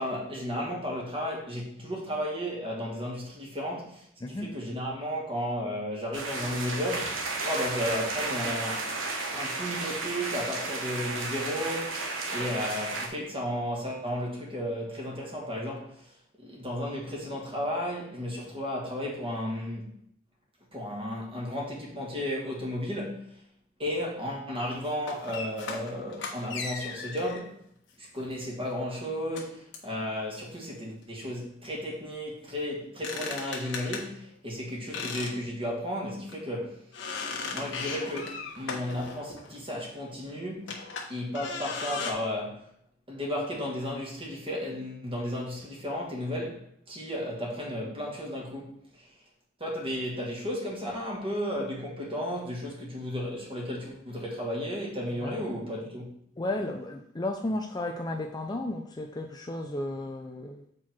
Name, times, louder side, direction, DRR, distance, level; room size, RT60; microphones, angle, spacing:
voice 1, 0.0-8.9 9.3-19.9 20.7-23.4 23.8-27.6 28.0-36.8 37.5-40.8 41.1-42.6 43.1-49.1 49.6-56.1, equal, 30° right, -3 dB, 2.3 m, -34 dB
voice 2, 4.2-4.5 55.2-55.4 56.4-60.6, left 1 dB, 20° left, 3 dB, 0.5 m, -33 dB
sound 1, 6.1-13.1, right 3 dB, 85° right, 1.2 m, -33 dB
sound 2, 24.7-27.4 28.2-28.4 29.3-29.4 29.7-29.9 32.8-34.1 34.9-35.4 35.7-35.8 36.3-36.4 36.9-39.6 40.6-42.1, left 4 dB, 65° left, 1.3 m, -37 dB
7.8 x 4.6 x 4.5 m, 0.68 s
head